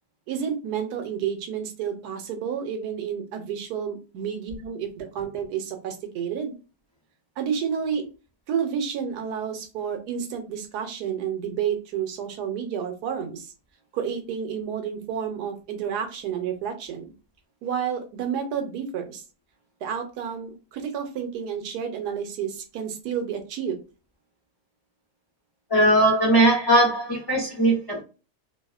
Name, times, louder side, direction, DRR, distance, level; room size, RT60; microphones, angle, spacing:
voice 1, 0.3-6.5 7.4-8.1 8.5-13.5 13.9-17.1 17.6-19.2 19.8-23.8, right 7 dB, 90° right, 5 dB, 1.2 m, -30 dB
voice 2, 25.7-28.0, right 1 dB, 20° left, -5 dB, 0.8 m, -19 dB
2.8 x 2.0 x 2.3 m, 0.33 s
omnidirectional pair, 1.7 m